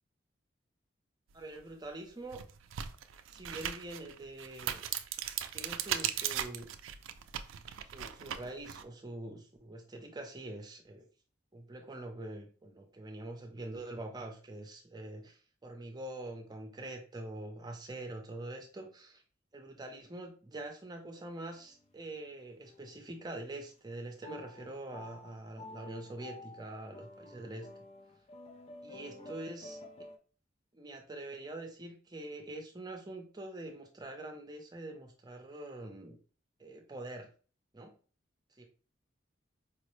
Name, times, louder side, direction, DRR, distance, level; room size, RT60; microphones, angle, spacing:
voice 1, 1.3-2.4 3.3-4.9 5.5-6.7 7.9-11.1 11.5-19.2 19.5-27.7 28.8-29.8 30.7-36.2 36.6-37.3 37.7-37.9 38.6-38.7, right 1 dB, 20° right, 3 dB, 0.6 m, -44 dB
sound 1, 1.6-1.7 2.2-8.8, right 10 dB, 90° right, 0.3 m, -38 dB
sound 2, 21.2-21.9 22.6-23.2 24.2-30.2, left 2 dB, 30° left, 0.3 m, -51 dB
4.6 x 2.1 x 3.1 m, 0.39 s
head